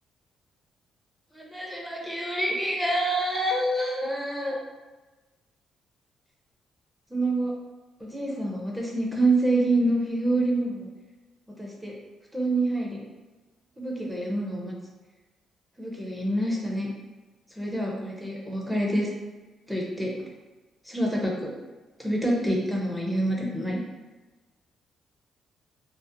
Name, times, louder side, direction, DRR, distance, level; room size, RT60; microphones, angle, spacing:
voice 1, 1.3-4.6 7.1-7.5 8.0-10.9 11.6-11.9 12.3-13.0 13.8-14.7 15.8-16.9 17.6-19.1 19.7-20.1 20.9-21.5 22.0-23.8, right 1 dB, 5° right, -3 dB, 0.6 m, -27 dB
2.5 x 2.0 x 2.7 m, 1.2 s
cardioid pair, 90°, 0 cm